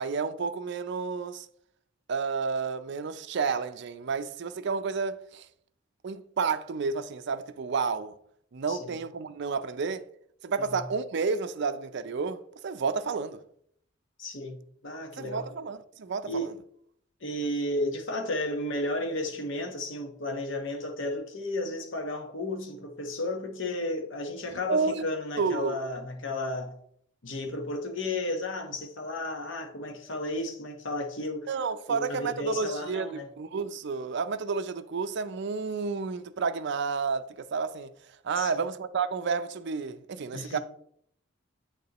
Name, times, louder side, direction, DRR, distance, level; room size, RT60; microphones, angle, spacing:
voice 1, 0.0-1.5 2.1-5.5 6.0-8.1 8.5-10.1 10.4-13.4 15.2-16.5 24.5-25.0 25.4-25.8 31.5-37.9 38.2-40.6, right 5 dB, 55° right, 0.5 m, -31 dB
voice 2, 14.2-15.5 16.2-16.5 17.2-26.7 27.2-31.5 31.9-33.3 38.4-38.6 40.3-40.6, left 1 dB, 65° left, 1.1 m, -33 dB
8.0 x 6.5 x 2.9 m
head